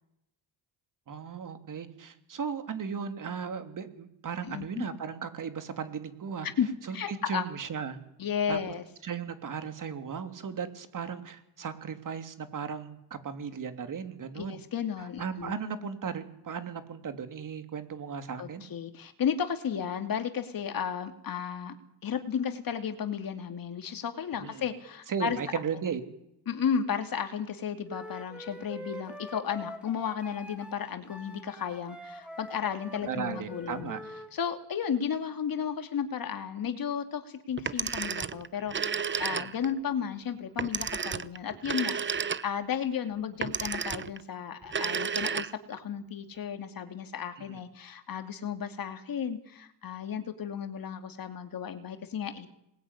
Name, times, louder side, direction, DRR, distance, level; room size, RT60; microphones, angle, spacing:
voice 1, 1.1-6.5 6.9-8.0 8.5-8.6 9.0-14.6 15.0-18.6 24.4-24.6 25.1-26.0 33.0-34.0 39.3-39.5 47.5-47.6, right 6 dB, 50° right, 9 dB, 3.2 m, -36 dB
voice 2, 4.4-4.9 6.4-6.7 6.9-7.5 8.2-8.8 14.4-15.5 18.4-21.7 22.0-25.4 26.5-33.9 34.3-42.0 42.4-52.5, left 7 dB, 55° left, 7 dB, 2.8 m, -33 dB
Wind instrument woodwind instrument, 27.9-34.3, left 1 dB, 5° right, 4.2 m, -44 dB
Telephone, 37.6-39.8 40.6-42.7 43.4-44.2 44.6-45.8, right 6 dB, 25° right, 0.9 m, -32 dB
26.5 x 20.5 x 9.9 m, 0.82 s
cardioid pair, 100°, 42 cm